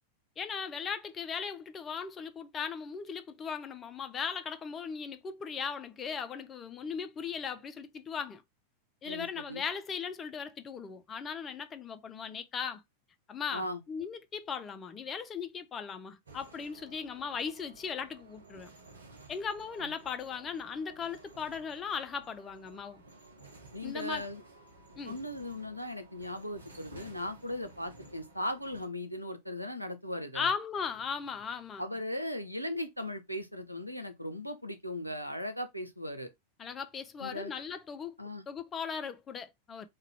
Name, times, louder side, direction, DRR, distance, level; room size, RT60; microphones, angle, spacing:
voice 1, 0.4-8.4 9.0-12.8 13.3-18.7 19.3-23.0 23.8-24.2 25.0-25.1 30.3-31.8 36.6-38.1 38.5-39.9, left 6 dB, 25° left, 0.4 m, -38 dB
voice 2, 9.0-9.6 13.5-13.8 19.8-19.9 23.7-24.4 25.0-30.5 31.8-36.3 37.2-37.5 38.2-38.4, left 1 dB, 90° left, 0.4 m, -38 dB
sound 1, 16.3-28.9, right 2 dB, 75° right, 0.8 m, -54 dB
3.1 x 2.3 x 3.2 m
figure-of-eight pair, 90°, 0 cm